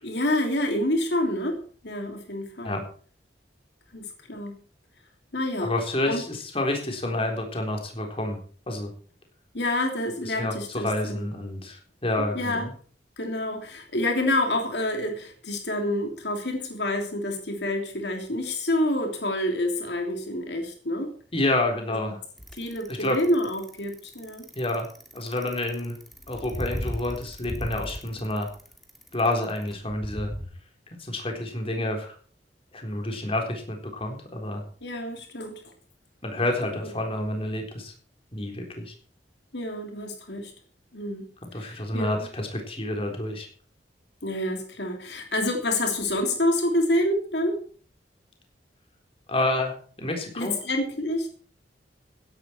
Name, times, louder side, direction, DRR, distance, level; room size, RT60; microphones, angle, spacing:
voice 1, 0.0-2.8 3.9-4.6 5.3-5.7 6.1-6.2 7.0-7.2 9.5-11.2 12.3-12.7 13.2-21.1 22.5-24.4 34.8-35.6 36.8-36.9 39.5-40.5 40.9-41.3 41.5-42.3 44.2-47.6 50.4-51.3, left 1 dB, 70° left, 3 dB, 3.0 m, -28 dB
voice 2, 5.6-8.4 8.7-8.9 10.2-12.7 21.3-22.2 22.9-23.2 24.6-24.9 25.1-26.0 26.3-28.5 29.1-30.3 31.0-32.1 32.7-34.6 36.2-37.9 38.3-38.9 41.4-43.5 49.3-50.6, left 1 dB, 35° left, 3 dB, 3.8 m, -29 dB
Bicycle, 22.4-30.5, equal, ahead, 2.3 m, -36 dB
16.0 x 11.5 x 4.5 m, 0.44 s
head